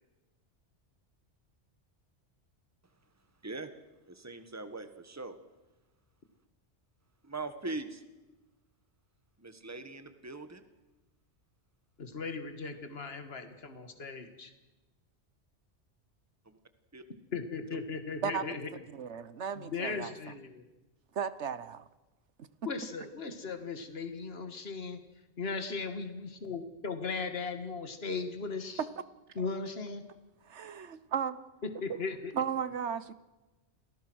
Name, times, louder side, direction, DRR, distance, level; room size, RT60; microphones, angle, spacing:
voice 1, 4.1-5.4 7.2-8.0 9.4-10.6 16.4-16.6 16.9-17.0 17.7-17.8, right 3 dB, 15° right, 9 dB, 1.6 m, -41 dB
voice 2, 12.0-14.5 17.3-18.6 19.6-20.6 22.7-25.0 25.4-28.8 29.4-30.0 31.8-32.3, left 4 dB, 60° left, 8 dB, 2.1 m, -37 dB
voice 3, 18.9-20.1 21.1-21.8 22.4-22.5 29.4-29.5 30.4-31.4 32.3-33.1, right 7 dB, 80° right, 15 dB, 1.4 m, -35 dB
28.5 x 19.5 x 6.3 m, 1.1 s
omnidirectional pair, 1.2 m